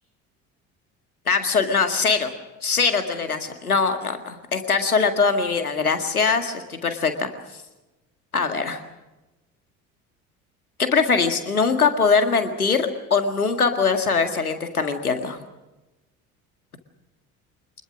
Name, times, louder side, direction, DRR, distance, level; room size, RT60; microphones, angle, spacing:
voice 1, 1.3-2.3 2.6-7.3 8.3-8.8 10.8-15.4, left 5 dB, 85° left, 7 dB, 2.0 m, -22 dB
26.5 x 21.0 x 6.2 m, 1.0 s
figure-of-eight pair, 60°, 43 cm